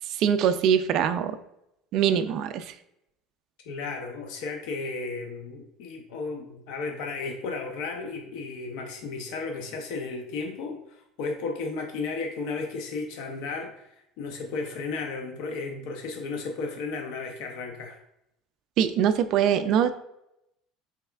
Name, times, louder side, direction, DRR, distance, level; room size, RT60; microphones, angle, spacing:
voice 1, 0.1-1.4 1.9-2.7 18.8-19.9, right 8 dB, 45° right, 10 dB, 0.3 m, -23 dB
voice 2, 3.7-18.0, left 4 dB, 65° left, 3 dB, 0.5 m, -34 dB
5.5 x 4.1 x 2.3 m, 0.82 s
cardioid pair, 180°, 0 cm